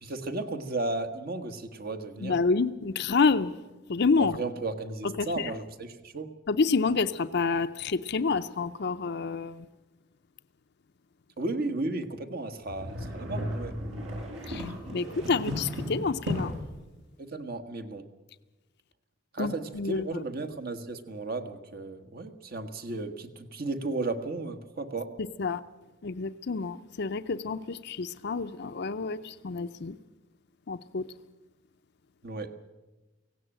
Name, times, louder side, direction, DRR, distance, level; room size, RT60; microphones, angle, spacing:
voice 1, 0.0-2.4 4.2-6.3 11.4-13.8 17.2-18.0 19.3-25.1 32.2-32.5, right 2 dB, 50° right, 8 dB, 1.4 m, -34 dB
voice 2, 2.2-3.5 3.9-4.3 5.0-5.5 6.5-9.6 14.5-14.6 14.9-16.6 19.4-20.2 25.4-25.6 26.0-29.9 30.7-31.0, left 4 dB, 55° left, 10 dB, 0.6 m, -28 dB
sound 1, 12.7-16.7, equal, 75° right, 5.3 m, -35 dB
17.5 x 16.5 x 8.9 m, 1.1 s
head